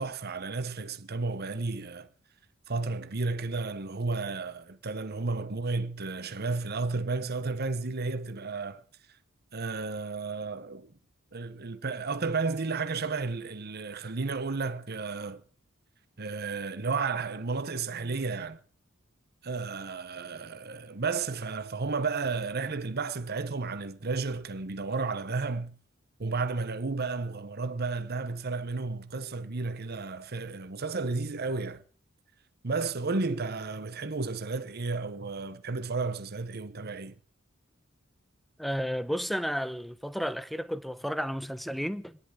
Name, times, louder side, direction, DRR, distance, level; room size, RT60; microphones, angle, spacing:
voice 1, 0.0-2.1 2.7-8.8 9.5-10.9 11.3-15.4 16.2-18.6 19.4-25.8 26.2-31.8 32.6-37.1, right 4 dB, 50° right, 1.0 m, -32 dB
voice 2, 38.6-42.2, equal, ahead, 0.8 m, -32 dB
25.5 x 10.5 x 4.9 m
head